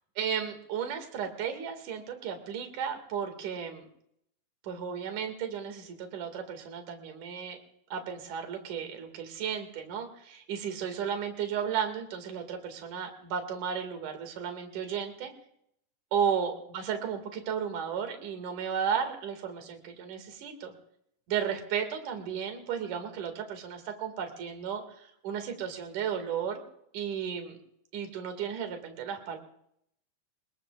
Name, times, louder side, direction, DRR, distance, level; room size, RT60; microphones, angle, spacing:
voice 1, 0.2-3.8 4.6-7.6 7.9-15.3 16.1-20.7 21.3-26.6 26.9-27.6 27.9-29.4, right 7 dB, 65° right, 5 dB, 3.5 m, -34 dB
27.0 x 22.0 x 2.4 m, 0.71 s
omnidirectional pair, 4.0 m